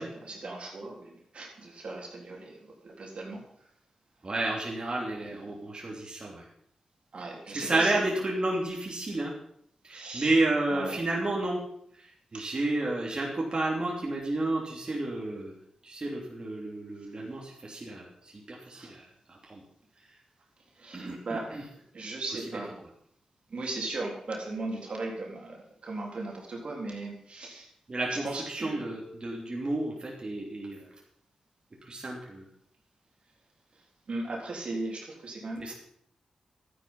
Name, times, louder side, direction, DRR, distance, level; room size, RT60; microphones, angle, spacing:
voice 1, 0.0-3.4 7.1-8.1 9.9-10.3 10.7-10.9 12.3-12.5 18.7-18.9 20.7-22.7 23.5-27.7 28.1-28.9 34.1-35.7, right 2 dB, 65° right, -1 dB, 3.8 m, -38 dB
voice 2, 4.2-6.5 7.5-9.3 9.8-11.6 11.9-19.6 20.9-21.6 27.9-30.9 31.8-32.4 35.6-35.7, right 2 dB, 45° right, -2 dB, 3.1 m, -31 dB
12.0 x 10.0 x 5.6 m, 0.69 s
cardioid pair, 50°, 2 cm